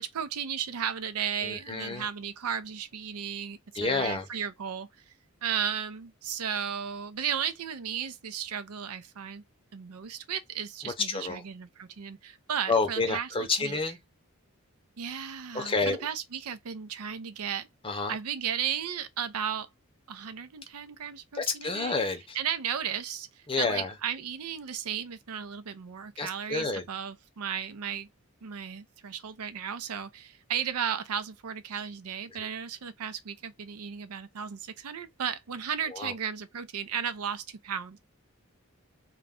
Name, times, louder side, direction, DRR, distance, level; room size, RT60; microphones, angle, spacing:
voice 1, 0.0-4.9 5.4-9.4 9.7-13.3 13.6-13.8 15.0-17.7 18.1-19.7 20.1-21.9 22.3-23.3 23.6-28.1 28.4-38.0, right 8 dB, 85° right, 0.5 m, -34 dB
voice 2, 1.4-2.1 3.7-4.3 10.8-11.4 12.7-14.0 15.5-16.1 17.8-18.2 21.3-22.4 23.5-23.9 26.2-26.9 32.3-32.5 35.9-36.1, left 3 dB, 25° left, 0.6 m, -29 dB
2.3 x 2.2 x 3.5 m
head